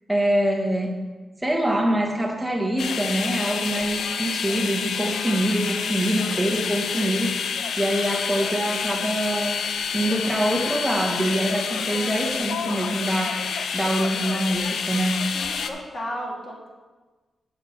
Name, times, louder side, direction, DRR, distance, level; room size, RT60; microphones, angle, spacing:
voice 1, 0.1-1.0 1.4-7.5 7.8-9.7 9.9-15.2, right 1 dB, 5° right, 0 dB, 1.1 m, -25 dB
sound 1, 2.8-15.7, left 6 dB, 80° left, 0.6 m, -28 dB
voice 2, 15.3-16.7, equal, 35° left, -3 dB, 2.0 m, -34 dB
7.6 x 5.8 x 5.6 m, 1.3 s
wide cardioid pair, 165°, 0 cm